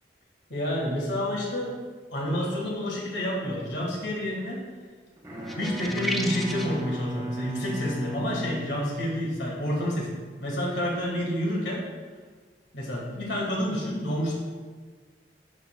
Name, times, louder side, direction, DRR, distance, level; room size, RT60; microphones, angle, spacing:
voice 1, 0.5-1.8 2.1-4.6 5.5-11.8 12.7-14.4, equal, 85° left, -3 dB, 1.6 m, -29 dB
Bowed string instrument, 5.2-9.5, equal, 15° right, 1.0 m, -35 dB
sound 1, 5.5-6.8, equal, ahead, 0.3 m, -33 dB
11.0 x 4.9 x 2.3 m, 1.5 s
head